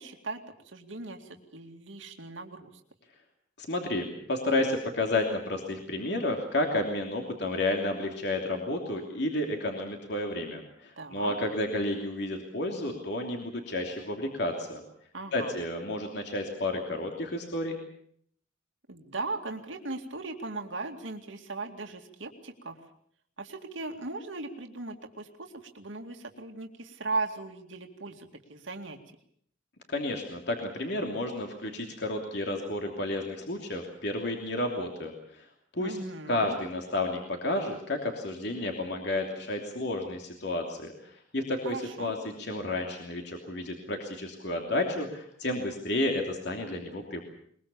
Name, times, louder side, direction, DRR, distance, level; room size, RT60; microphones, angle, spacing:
voice 1, 0.0-2.7 11.0-11.3 15.1-15.6 18.9-22.8 23.4-29.0 35.8-36.6 41.6-42.1, right 3 dB, 85° right, 3 dB, 2.4 m, -38 dB
voice 2, 3.6-14.8 15.3-17.8 29.9-35.5 35.7-36.0 36.3-47.2, left 1 dB, 60° left, 2 dB, 3.0 m, -31 dB
22.0 x 22.0 x 7.0 m, 0.64 s
head